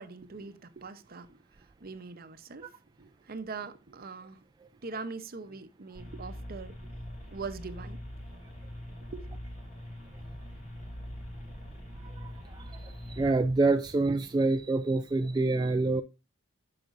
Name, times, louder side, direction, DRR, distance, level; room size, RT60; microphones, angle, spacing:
voice 1, 0.0-2.7 3.0-4.4 4.8-6.9 7.3-8.0 9.0-9.4, right 4 dB, 45° right, 0.7 m, -42 dB
sound 1, 5.9-13.3, equal, 35° left, 3.1 m, -43 dB
voice 2, 12.0-16.0, right 3 dB, 20° right, 0.3 m, -27 dB
9.0 x 5.8 x 2.5 m
head